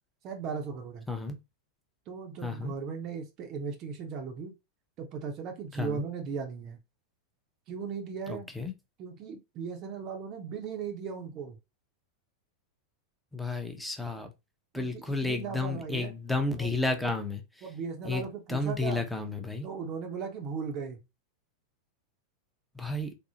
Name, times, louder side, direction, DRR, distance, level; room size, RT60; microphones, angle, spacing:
voice 1, 0.2-1.1 2.1-4.5 5.0-6.8 7.7-8.5 9.0-11.6 14.7-16.1 16.6-16.7 17.6-19.0 19.6-21.0, right 6 dB, 35° right, 0.6 m, -37 dB
voice 2, 2.4-2.7 5.7-6.0 8.3-8.7 13.3-14.3 14.7-17.6 18.0-19.7 22.7-23.1, left 2 dB, 5° left, 0.6 m, -32 dB
3.5 x 2.0 x 2.7 m
figure-of-eight pair, 90°, 0 cm